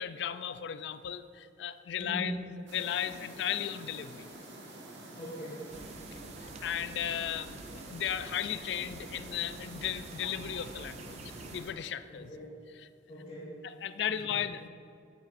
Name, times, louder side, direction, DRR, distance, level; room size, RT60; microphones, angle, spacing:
voice 1, 0.0-2.4 2.7-4.3 6.4-11.2 11.5-12.3 13.6-14.7, left 9 dB, 65° left, 12 dB, 0.3 m, -35 dB
voice 2, 2.0-2.4 5.2-5.7 12.1-12.5 13.1-13.6 14.1-14.4, equal, 35° left, -8 dB, 1.7 m, -40 dB
sound 1, 2.7-11.7, right 1 dB, 75° right, 1.4 m, -48 dB
sound 2, 5.7-11.6, right 3 dB, 35° right, 0.4 m, -48 dB
9.2 x 9.0 x 2.5 m, 2.5 s
head